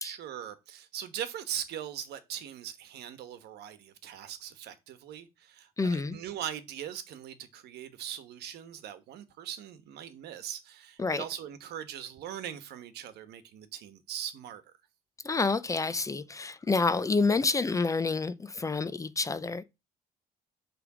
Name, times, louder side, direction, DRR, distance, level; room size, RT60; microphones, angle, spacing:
voice 1, 0.0-14.6, right 10 dB, 75° right, 1.2 m, -40 dB
voice 2, 5.8-6.2 11.0-11.2 15.2-19.6, left 4 dB, 20° left, 0.6 m, -28 dB
8.4 x 3.5 x 6.1 m
cardioid pair, 110°, 17 cm